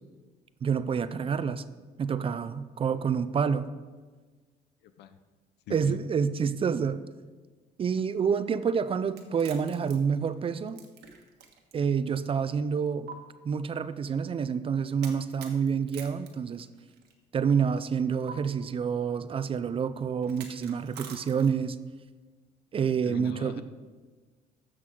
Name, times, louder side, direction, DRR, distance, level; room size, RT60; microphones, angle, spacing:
voice 1, 0.6-1.6 2.0-3.7 5.7-7.0 7.8-10.8 11.7-13.1 13.4-16.7 17.3-21.8 22.7-23.6, right 6 dB, 35° right, 14 dB, 0.4 m, -28 dB
voice 2, 4.8-5.2 5.7-6.0 23.0-23.6, left 8 dB, 80° left, 10 dB, 0.7 m, -41 dB
sound 1, 9.1-11.8 12.1-12.2 13.1-13.2 15.0-17.1 18.3-18.4 20.2-21.7, right 7 dB, 80° right, 1.4 m, -46 dB
14.0 x 6.1 x 3.8 m, 1.4 s
cardioid pair, 110°, 17 cm